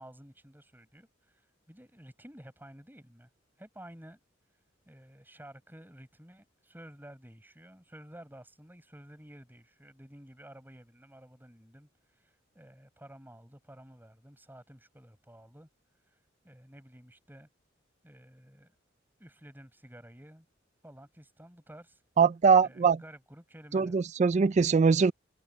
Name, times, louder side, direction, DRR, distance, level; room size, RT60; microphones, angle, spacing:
voice 1, 0.0-3.3 3.6-4.2 4.8-15.7 16.1-17.5 18.0-18.7 19.2-20.5 20.8-22.0 22.6-24.0, right 1 dB, 10° right, 6.4 m, -52 dB
voice 2, 22.2-23.0 23.7-25.1, right 5 dB, 35° right, 0.3 m, -22 dB
head